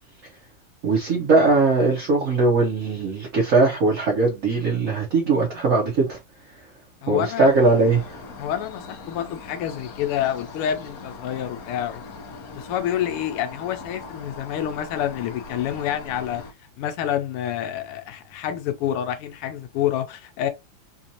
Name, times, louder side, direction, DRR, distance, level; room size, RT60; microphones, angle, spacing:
voice 1, 0.8-6.2 6.5-6.7 7.1-8.2, right 3 dB, 45° right, 1.1 m, -20 dB
voice 2, 7.0-7.5 8.4-12.0 12.5-16.4 16.8-20.5, left 10 dB, 85° left, 1.5 m, -28 dB
sound 1, 7.4-16.5, left 4 dB, 70° left, 0.9 m, -40 dB
4.4 x 2.6 x 2.8 m
omnidirectional pair, 2.4 m